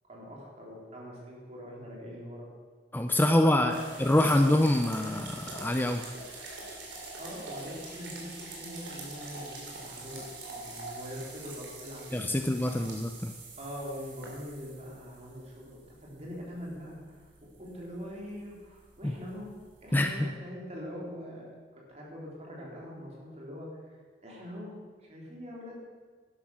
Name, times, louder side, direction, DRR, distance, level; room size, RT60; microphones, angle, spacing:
voice 1, 0.1-2.5 3.3-3.9 7.2-12.4 13.6-17.3 17.6-19.5 19.8-21.5 21.9-24.7 25.0-25.8, equal, 40° right, -3 dB, 3.8 m, -43 dB
voice 2, 2.9-6.0 12.1-13.3 19.9-20.2, left 1 dB, 10° left, 6 dB, 0.5 m, -25 dB
sound 1, 3.7-20.2, right 2 dB, 90° right, 3.7 m, -45 dB
11.5 x 11.5 x 6.2 m, 1.5 s
head